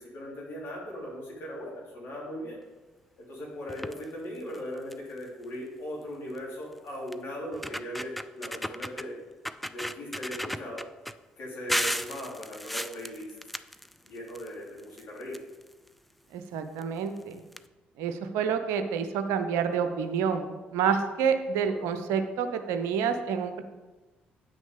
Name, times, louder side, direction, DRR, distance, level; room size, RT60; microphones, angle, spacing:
voice 1, 0.0-2.6 3.2-9.2 9.7-10.8 11.4-13.3 14.0-15.4 21.6-21.9, equal, 50° left, -4 dB, 3.5 m, -39 dB
sound 1, 3.7-4.0 4.5-4.6 4.9-5.2 6.4-6.5 7.1-7.2 7.5-9.1 9.4-11.1 11.7-14.5 14.8-15.9 16.8-16.9 17.2-17.3 17.5-17.6, equal, ahead, 0.4 m, -34 dB
voice 2, 16.3-17.4 18.0-23.6, right 6 dB, 65° right, 8 dB, 0.7 m, -28 dB
9.0 x 6.3 x 5.1 m, 1.2 s
figure-of-eight pair, 45°, 5 cm